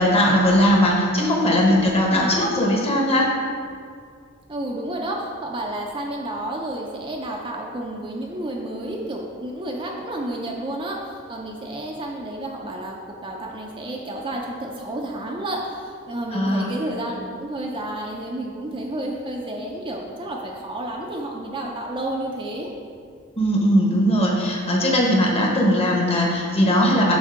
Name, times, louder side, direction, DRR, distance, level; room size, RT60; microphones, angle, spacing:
voice 1, 0.0-3.3 16.3-16.8 23.4-27.2, equal, 25° left, -2 dB, 1.0 m, -19 dB
voice 2, 2.1-2.4 4.5-22.7, right 1 dB, 25° right, -1 dB, 0.5 m, -31 dB
7.2 x 2.7 x 5.8 m, 2.2 s
head